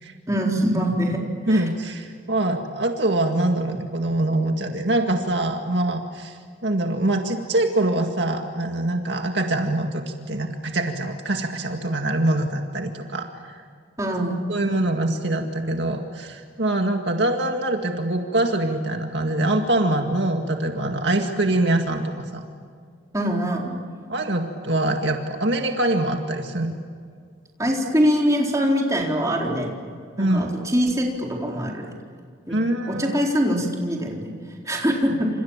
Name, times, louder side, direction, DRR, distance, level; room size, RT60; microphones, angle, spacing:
voice 1, 0.3-1.7 14.0-14.4 23.1-23.8 27.6-29.7 30.2-31.9 32.5-34.3 34.7-35.3, equal, 15° right, -1 dB, 4.2 m, -23 dB
voice 2, 1.5-13.6 14.5-22.4 24.1-26.8 30.2-30.5 32.5-33.2, right 1 dB, 60° right, 3 dB, 2.0 m, -24 dB
29.0 x 27.5 x 7.4 m, 2.1 s
head